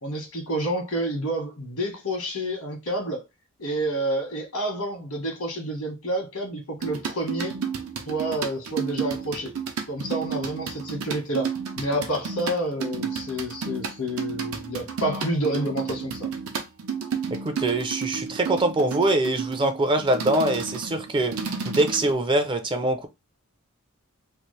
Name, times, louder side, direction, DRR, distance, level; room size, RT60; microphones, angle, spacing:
voice 1, 0.0-3.2 3.6-7.5 8.1-9.5 9.9-16.3, right 1 dB, 85° left, 1.4 m, -29 dB
sound 1, 6.8-22.1, right 6 dB, 85° right, 0.7 m, -32 dB
voice 2, 17.3-21.4 21.6-23.1, right 1 dB, 25° right, 0.4 m, -23 dB
3.1 x 2.4 x 3.2 m
head